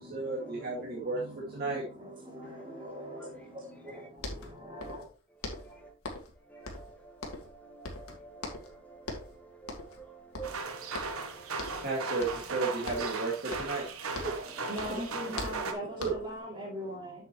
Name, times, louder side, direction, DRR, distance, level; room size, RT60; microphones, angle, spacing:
voice 1, 0.0-1.2 1.5-1.8 11.8-13.9 14.9-15.1 16.0-16.1, right 3 dB, 45° right, 2.0 m, -33 dB
voice 2, 2.4-3.3 4.7-5.0 14.2-14.3 14.7-17.1, right 1 dB, 25° right, 2.8 m, -40 dB
sound 1, 3.9-4.0 4.2-5.1 5.4-6.4 6.7-7.6 7.8-8.8 9.0-9.4 9.7-10.0 10.3-11.3 11.6-11.9 12.2-12.6 12.9-14.5 14.8-16.4, left 2 dB, 90° left, 1.9 m, -41 dB
voice 3, 6.5-7.0 7.2-7.4 7.7-8.6 8.9-9.3 9.6-11.1 11.4-11.8, right 5 dB, 5° left, 1.6 m, -49 dB
sound 2, 10.4-15.7, right 4 dB, 80° right, 1.1 m, -37 dB
7.7 x 7.2 x 3.0 m
head